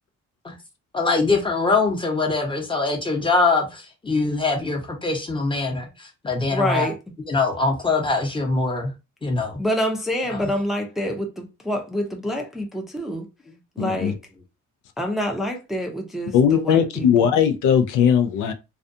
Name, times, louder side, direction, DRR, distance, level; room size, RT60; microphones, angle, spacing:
voice 1, 0.9-6.9 7.3-8.9 9.2-9.6 10.3-10.5, left 3 dB, 15° left, 0.9 m, -23 dB
voice 2, 6.5-7.0 9.6-13.2 13.8-14.1 15.0-17.3, equal, ahead, 0.5 m, -27 dB
voice 3, 13.8-14.1 16.3-18.5, left 8 dB, 85° left, 0.5 m, -19 dB
2.4 x 2.3 x 2.6 m
cardioid pair, 90°, 30 cm